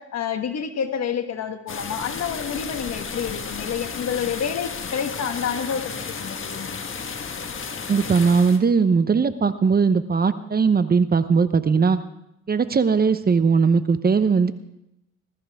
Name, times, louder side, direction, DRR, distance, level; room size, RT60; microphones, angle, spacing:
voice 1, 0.0-6.8, left 7 dB, 60° left, 7 dB, 1.5 m, -29 dB
sound 1, 1.7-8.6, left 5 dB, 40° left, 1.5 m, -33 dB
voice 2, 7.9-12.0 12.5-14.5, right 5 dB, 30° right, 12 dB, 0.8 m, -19 dB
20.0 x 14.0 x 3.6 m, 0.85 s
cardioid pair, 90°, 30 cm